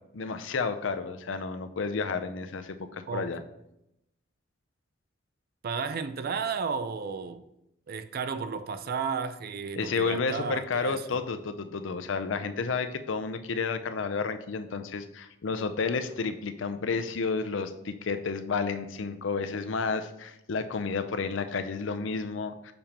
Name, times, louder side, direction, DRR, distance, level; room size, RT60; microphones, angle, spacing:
voice 1, 0.1-3.4 9.8-22.7, left 4 dB, 75° left, 0.5 m, -31 dB
voice 2, 5.6-7.4 7.9-11.0, right 5 dB, 55° right, 0.4 m, -33 dB
6.8 x 5.3 x 2.9 m
head